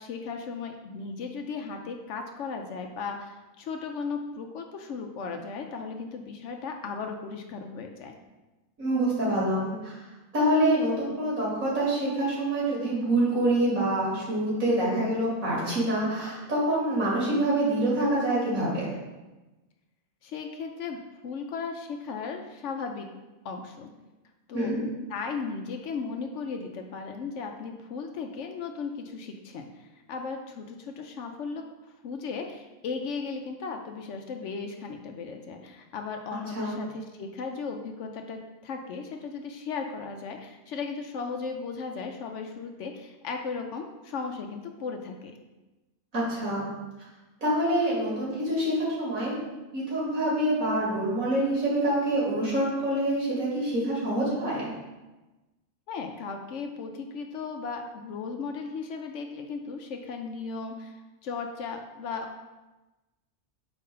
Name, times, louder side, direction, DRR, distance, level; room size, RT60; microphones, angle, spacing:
voice 1, 0.0-8.2 20.2-21.0 21.2-23.1 23.4-23.9 24.5-24.7 25.1-31.6 32.0-45.4 55.9-62.4, left 5 dB, 65° left, 4 dB, 0.8 m, -36 dB
voice 2, 8.8-10.0 10.3-18.8 24.5-24.8 36.5-36.8 46.1-46.7 47.4-49.4 49.7-54.7, right 1 dB, 80° right, -6 dB, 2.6 m, -26 dB
4.5 x 3.9 x 5.4 m, 1.1 s
omnidirectional pair, 1.4 m